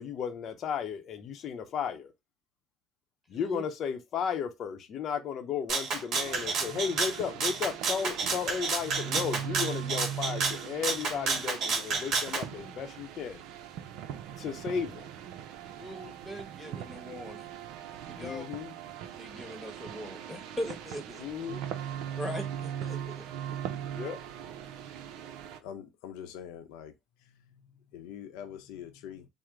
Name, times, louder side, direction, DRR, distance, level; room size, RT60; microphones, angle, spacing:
voice 1, 0.0-2.1 3.3-13.4 14.4-15.1 18.2-18.7 21.2-21.6 23.9-24.2, left 7 dB, 50° left, 0.7 m, -34 dB
voice 2, 3.3-3.6 14.3-14.4 15.8-17.5 17.9-18.5 19.2-21.3 22.2-23.3, equal, 10° left, 1.1 m, -40 dB
Rattle (instrument), 5.7-12.4, right 4 dB, 55° right, 1.3 m, -30 dB
sound 1, 6.1-25.6, right 9 dB, 75° right, 0.6 m, -40 dB
voice 3, 25.6-26.9 27.2-27.3 27.9-29.3, left 9 dB, 85° left, 0.7 m, -44 dB
4.5 x 2.1 x 3.7 m
cardioid pair, 110°, 0 cm